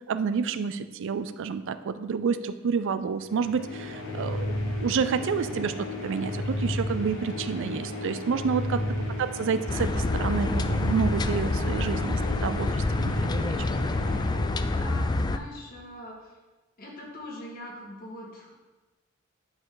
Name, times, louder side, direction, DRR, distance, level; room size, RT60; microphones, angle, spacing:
voice 1, 0.1-8.8 9.2-13.6, right 6 dB, 60° right, 12 dB, 0.4 m, -29 dB
sound 1, 3.3-15.1, left 1 dB, 65° left, 1.5 m, -33 dB
sound 2, 9.7-15.4, left 2 dB, 20° left, 0.3 m, -27 dB
voice 2, 14.6-16.4 16.8-18.5, equal, 45° left, -2 dB, 1.8 m, -42 dB
9.6 x 5.3 x 3.9 m, 1.2 s
head